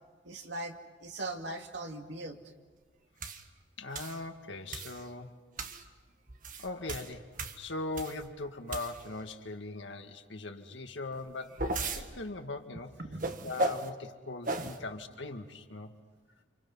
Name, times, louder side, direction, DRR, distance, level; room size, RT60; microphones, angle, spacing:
voice 1, 0.2-2.4 13.0-13.4, right 2 dB, 75° right, 3 dB, 2.5 m, -40 dB
sound 1, 3.2-3.4 3.9-4.2 4.7-5.0 5.6-5.8 6.3-8.3 8.7-9.2 11.1-12.0 13.2-13.9 14.4-14.8, right 2 dB, 45° right, 1.6 m, -35 dB
voice 2, 3.8-5.3 6.6-7.3 7.6-12.9 13.4-15.9, left 2 dB, 80° left, 5 dB, 2.0 m, -40 dB
29.5 x 28.0 x 5.6 m, 1.4 s
head